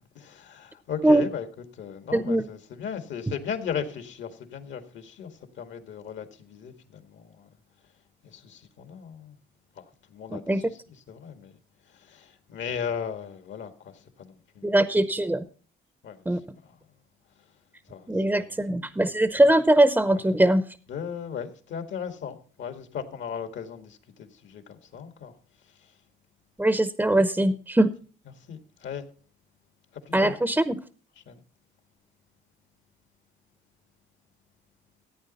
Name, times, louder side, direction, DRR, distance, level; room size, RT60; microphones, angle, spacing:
voice 1, 0.2-1.5 1.7-7.5 8.2-9.4 9.8-11.5 11.8-14.8 16.0-16.8 17.4-17.5 17.9-18.5 20.1-20.2 20.9-25.3 25.6-25.9 28.3-29.0 29.9-30.4 31.2-31.4, left 7 dB, 70° left, 1.8 m, -37 dB
voice 2, 2.1-2.4 10.3-10.6 14.6-15.4 16.3-16.4 18.1-20.6 26.6-27.9 30.1-30.7, right 1 dB, 10° right, 0.7 m, -21 dB
15.0 x 8.8 x 4.1 m
cardioid pair, 90°, 20 cm